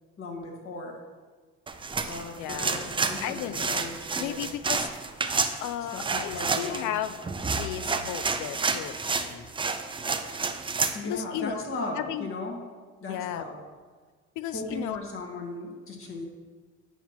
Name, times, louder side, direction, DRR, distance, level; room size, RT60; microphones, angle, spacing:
voice 1, 0.2-1.0 2.0-4.4 5.9-7.0 10.9-12.6 13.0-13.6 14.5-16.3, left 2 dB, 50° left, 0 dB, 1.7 m, -37 dB
sound 1, 1.7-11.0, right 4 dB, 15° right, 0.4 m, -30 dB
voice 2, 2.3-3.8 4.2-4.9 5.6-7.2 7.5-9.8 11.0-11.6 11.9-12.3 13.1-13.4 14.4-15.0, left 11 dB, 90° left, 13 dB, 0.5 m, -35 dB
9.1 x 5.7 x 2.9 m, 1.4 s
cardioid pair, 85°, 29 cm